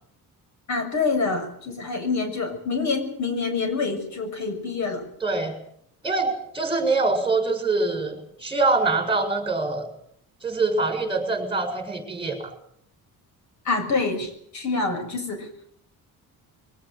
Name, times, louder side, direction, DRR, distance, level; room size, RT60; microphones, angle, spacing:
voice 1, 0.7-5.0 13.7-15.7, left 4 dB, 50° left, 8 dB, 7.0 m, -26 dB
voice 2, 5.2-5.5 6.0-9.8 10.4-12.5, right 3 dB, 15° right, 6 dB, 7.5 m, -24 dB
23.5 x 18.5 x 9.1 m, 0.68 s
cardioid pair, 140°, 36 cm